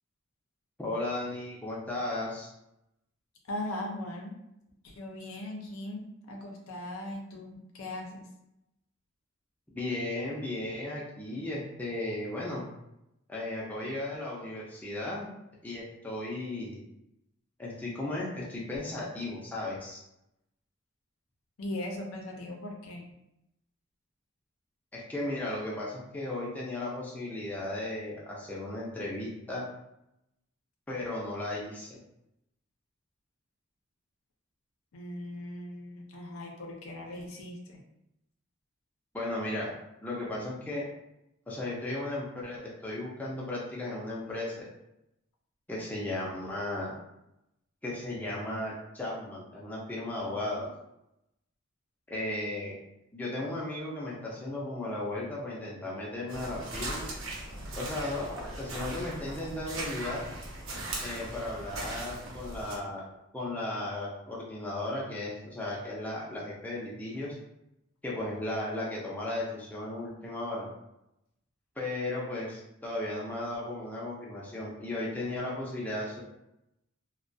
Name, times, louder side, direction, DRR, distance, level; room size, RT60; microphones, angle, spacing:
voice 1, 0.8-2.5 9.7-12.6 13.3-15.3 15.6-16.8 17.6-20.0 24.9-29.6 30.9-32.0 39.1-39.7 40.0-40.9 41.5-44.6 45.7-47.0 47.8-50.7 52.1-52.7 53.1-57.1 57.7-60.3 61.0-63.1 63.3-67.4 68.0-70.7 71.8-76.2, left 1 dB, 10° left, -6 dB, 0.4 m, -35 dB
voice 2, 3.5-4.3 4.8-8.2 21.6-23.0 34.9-37.8, left 1 dB, 80° left, 0 dB, 0.5 m, -39 dB
sound 1, 56.3-62.8, right 1 dB, 70° right, 0.6 m, -39 dB
2.3 x 2.1 x 2.5 m, 0.85 s
head